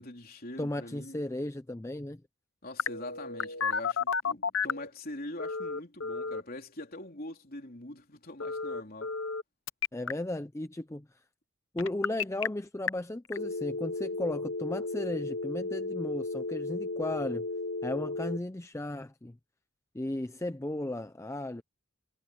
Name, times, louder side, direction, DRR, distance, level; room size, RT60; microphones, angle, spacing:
voice 1, 0.0-1.2 2.6-9.1, left 1 dB, 40° left, 3.8 m, -43 dB
voice 2, 0.6-2.2 9.9-11.1 11.7-17.4 17.8-19.4 19.9-21.6, left 1 dB, 15° left, 0.5 m, -35 dB
Telephone, 2.8-4.9 5.4-6.4 8.4-9.4 9.7-10.1 11.8-12.5 12.9-13.0 13.3-18.4, left 4 dB, 60° left, 0.9 m, -33 dB
head